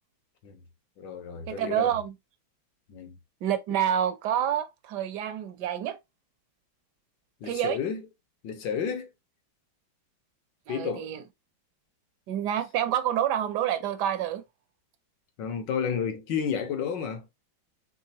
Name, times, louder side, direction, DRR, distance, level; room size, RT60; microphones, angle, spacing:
voice 1, 1.0-1.9 2.9-3.2 7.4-8.0 8.4-9.1 10.7-11.1 15.4-17.3, left 7 dB, 70° left, 1.6 m, -31 dB
voice 2, 1.5-2.1 3.4-6.0 7.4-7.8 10.7-11.2 12.3-14.4, right 10 dB, 70° right, 1.1 m, -28 dB
5.5 x 3.3 x 2.8 m
omnidirectional pair, 2.1 m